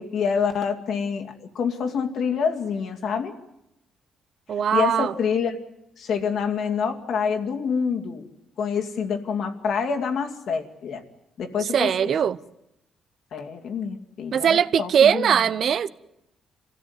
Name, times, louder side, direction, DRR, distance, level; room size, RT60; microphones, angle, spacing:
voice 1, 0.0-3.3 4.7-5.6 6.0-8.3 8.6-11.0 11.4-11.9 13.3-15.5, left 6 dB, 65° left, 2.4 m, -27 dB
voice 2, 4.5-5.1 11.7-12.4 14.3-15.9, right 8 dB, 60° right, 0.8 m, -20 dB
26.5 x 16.0 x 9.6 m
cardioid pair, 90°, 0 cm